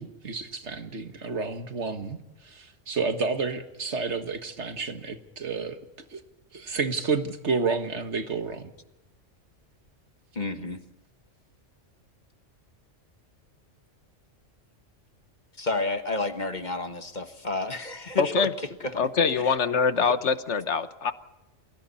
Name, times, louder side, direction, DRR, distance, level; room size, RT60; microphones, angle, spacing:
voice 1, 0.0-5.8 6.1-6.2 6.5-8.7 10.6-10.7, right 4 dB, 65° right, 7 dB, 1.9 m, -30 dB
voice 2, 10.3-10.8 15.6-18.5 18.8-19.0 19.4-19.6 20.0-20.1, left 2 dB, 35° left, 8 dB, 1.5 m, -31 dB
voice 3, 18.2-18.5 19.0-21.1, left 5 dB, 65° left, 11 dB, 1.3 m, -24 dB
29.0 x 21.5 x 4.2 m, 0.99 s
omnidirectional pair, 1.3 m